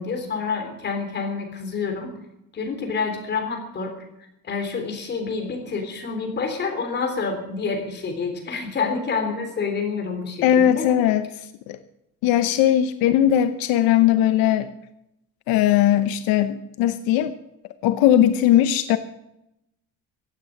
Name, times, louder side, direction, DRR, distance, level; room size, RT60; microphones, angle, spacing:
voice 1, 0.0-2.1 2.5-3.9 4.4-10.9, left 5 dB, 30° left, 4 dB, 3.5 m, -28 dB
voice 2, 10.4-11.2 11.7-11.8 12.2-14.7 15.5-17.3 17.8-19.0, left 11 dB, 80° left, 11 dB, 0.9 m, -19 dB
15.5 x 9.2 x 8.5 m, 0.86 s
cardioid pair, 165°, 35 cm